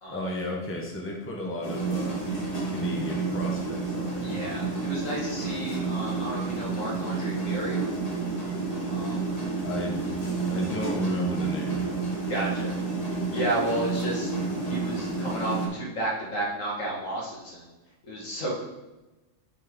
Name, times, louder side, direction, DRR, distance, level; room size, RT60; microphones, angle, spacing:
voice 1, 0.1-4.4 9.6-12.1, left 1 dB, 10° left, -2 dB, 1.0 m, -34 dB
sound 1, 1.6-15.7, right 3 dB, 30° left, 1.5 m, -30 dB
voice 2, 4.2-7.9 8.9-9.3 12.3-12.7 13.3-14.3 14.7-17.7 18.1-18.6, right 1 dB, 75° left, -4 dB, 2.2 m, -32 dB
6.2 x 6.1 x 3.8 m, 1.1 s
omnidirectional pair, 1.3 m